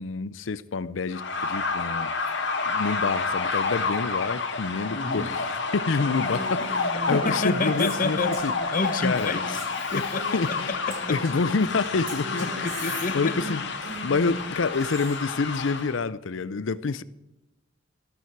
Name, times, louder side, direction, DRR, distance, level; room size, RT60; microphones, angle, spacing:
voice 1, 0.0-2.4 2.7-8.5 9.0-9.4 9.9-10.1 10.3-10.7 11.1-12.7 13.1-13.6 14.0-17.0, left 4 dB, 85° left, 0.6 m, -28 dB
sound 1, 1.1-15.9, left 4 dB, 65° left, 2.0 m, -29 dB
voice 2, 4.9-5.3 7.1-8.4 8.7-9.6 9.9-10.6 10.9-11.2 12.4-13.4, left 3 dB, 45° left, 1.1 m, -29 dB
Female speech woman speaking, 6.2-11.6 12.1-15.2, right 2 dB, 85° right, 5.3 m, -39 dB
14.0 x 13.5 x 4.7 m
head